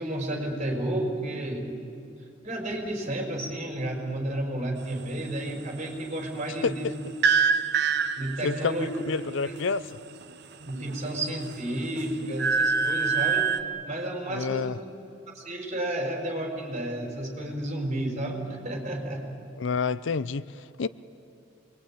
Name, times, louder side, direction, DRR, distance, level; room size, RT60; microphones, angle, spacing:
voice 1, 0.0-1.8 2.4-6.9 8.2-8.9 9.4-9.5 10.6-13.5 13.8-14.8 15.3-19.2, right 1 dB, 35° right, 4.9 m, -31 dB
sound 1, 7.2-8.7 10.7-11.4 11.8-13.6, right 6 dB, 55° right, 0.9 m, -25 dB
voice 2, 8.4-9.9 14.3-14.8 19.6-20.9, left 5 dB, 65° left, 0.5 m, -29 dB
27.5 x 21.5 x 8.8 m
head